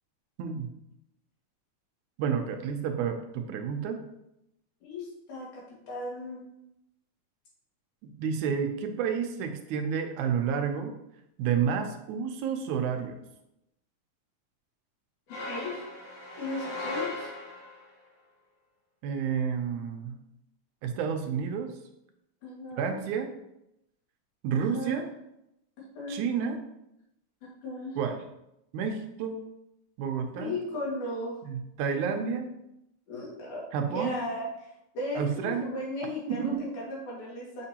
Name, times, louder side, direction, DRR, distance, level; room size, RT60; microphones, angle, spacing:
voice 1, 2.2-4.0 8.0-10.9 11.4-13.2 19.0-20.2 20.8-21.7 22.8-23.3 24.4-25.1 26.1-26.6 28.0-28.2 28.7-29.4 30.0-30.6 31.4-32.5 33.7-34.2 35.2-35.7 36.0-36.6, right 7 dB, 75° right, 5 dB, 2.0 m, -30 dB
voice 2, 4.8-6.5 15.5-15.8 16.4-17.3 22.4-23.0 24.5-25.0 25.9-26.2 27.6-28.0 30.4-31.4 33.1-35.2 35.6-37.7, left 1 dB, 70° left, -4 dB, 3.4 m, -36 dB
sound 1, 15.3-17.9, left 2 dB, 90° left, 3.5 m, -37 dB
7.6 x 5.2 x 2.9 m, 0.83 s
omnidirectional pair, 3.6 m